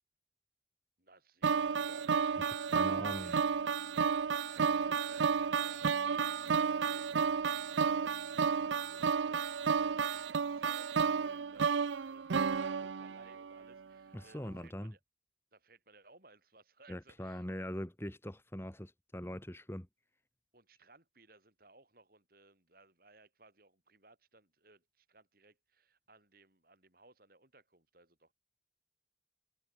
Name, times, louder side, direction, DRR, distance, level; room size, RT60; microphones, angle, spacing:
voice 1, 1.0-3.4 3.9-15.0 15.5-17.5 20.5-28.3, right 3 dB, 50° right, 7.0 m, -63 dB
sound 1, 1.4-13.6, right 6 dB, 90° right, 0.5 m, -32 dB
voice 2, 2.4-3.4 14.1-14.9 16.9-19.9, equal, 15° left, 2.5 m, -42 dB
head